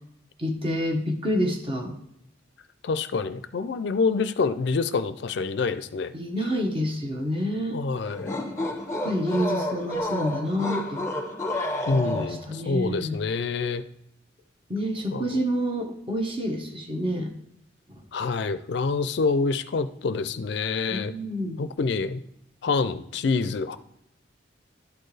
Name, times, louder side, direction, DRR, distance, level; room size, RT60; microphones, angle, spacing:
voice 1, 0.4-1.9 6.1-7.8 9.0-11.1 11.9-13.2 14.7-17.3 17.9-18.0 20.9-21.6, equal, 25° right, 1 dB, 1.0 m, -28 dB
voice 2, 2.8-6.1 7.7-8.4 11.9-13.8 15.1-15.4 18.1-21.1 21.6-22.2 22.6-23.8, left 4 dB, 60° left, 12 dB, 0.4 m, -26 dB
sound 1, 8.1-12.5, left 1 dB, 15° left, 1.0 m, -30 dB
11.5 x 4.4 x 3.2 m, 0.78 s
head